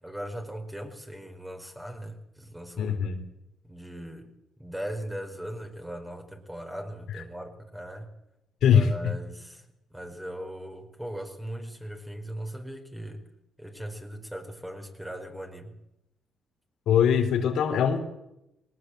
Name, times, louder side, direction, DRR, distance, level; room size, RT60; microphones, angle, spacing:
voice 1, 0.0-3.0 3.6-4.3 4.6-8.1 8.7-9.7 9.9-13.2 13.6-15.7, right 1 dB, 5° right, 4 dB, 4.8 m, -39 dB
voice 2, 2.8-3.2 7.1-7.2 8.6-9.1 16.9-18.0, left 8 dB, 75° left, 4 dB, 3.2 m, -22 dB
21.0 x 19.0 x 7.9 m, 0.86 s
cardioid pair, 90°, 0 cm